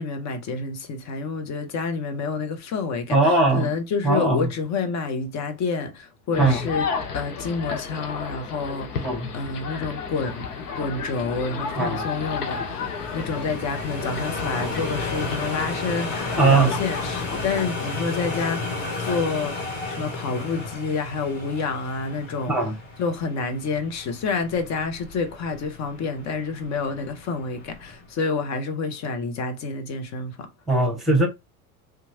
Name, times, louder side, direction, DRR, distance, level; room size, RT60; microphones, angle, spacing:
voice 1, 0.0-6.9 7.1-9.1 9.3-18.6 19.0-30.5, left 4 dB, 40° left, 0.8 m, -29 dB
voice 2, 3.1-3.7 4.0-4.4 6.4-6.6 9.0-9.3 11.8-12.0 16.4-16.7 22.5-22.7 30.7-31.3, right 2 dB, ahead, 1.1 m, -19 dB
sound 1, 6.3-17.6, left 6 dB, 90° left, 0.7 m, -33 dB
sound 2, 9.8-28.1, left 3 dB, 60° left, 1.4 m, -34 dB
2.9 x 2.3 x 2.6 m
hypercardioid pair, 85°, 45 cm